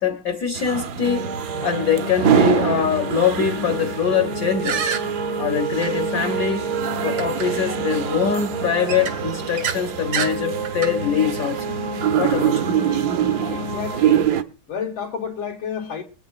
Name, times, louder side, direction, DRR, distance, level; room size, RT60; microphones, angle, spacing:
voice 1, 0.0-4.9 5.4-6.8 7.0-11.8 12.2-12.8, left 7 dB, 60° left, 1.0 m, -23 dB
sound 1, 0.5-14.4, right 9 dB, 65° right, 1.2 m, -25 dB
sound 2, 1.0-14.2, right 4 dB, 45° right, 0.6 m, -30 dB
sound 3, 4.6-5.0 5.8-5.9 7.2-7.5 7.9-8.1 8.9-9.8 10.1-10.3 10.6-10.9, right 7 dB, 85° right, 2.0 m, -26 dB
voice 2, 13.5-14.3 14.7-16.0, left 6 dB, 90° left, 2.3 m, -30 dB
23.0 x 8.9 x 2.4 m
omnidirectional pair, 2.2 m